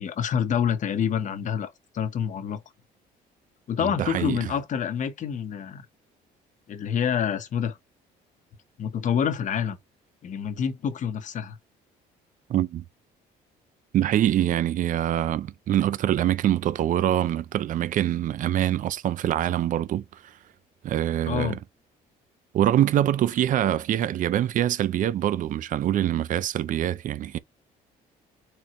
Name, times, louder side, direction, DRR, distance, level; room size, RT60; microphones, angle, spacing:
voice 1, 0.0-2.6 3.7-5.8 6.7-7.8 8.8-9.8 10.2-11.6 21.3-21.6, left 8 dB, 50° left, 1.0 m, -27 dB
voice 2, 3.8-4.5 12.5-12.8 13.9-20.3 20.8-21.6 22.5-27.4, right 11 dB, 50° right, 0.5 m, -24 dB
4.5 x 3.6 x 3.0 m
cardioid pair, 110°, 17 cm